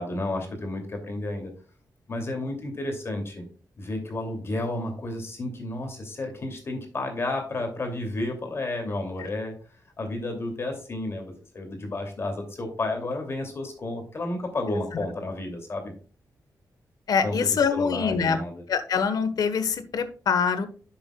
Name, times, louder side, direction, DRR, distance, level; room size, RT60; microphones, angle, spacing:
voice 1, 0.0-1.5 2.1-3.4 3.8-9.5 10.0-15.9 17.2-18.6, left 2 dB, 40° left, 4 dB, 2.5 m, -31 dB
voice 2, 17.1-18.4 18.7-20.7, left 6 dB, 70° left, 11 dB, 1.2 m, -24 dB
10.5 x 7.0 x 2.3 m, 0.40 s
wide cardioid pair, 145°, 7 cm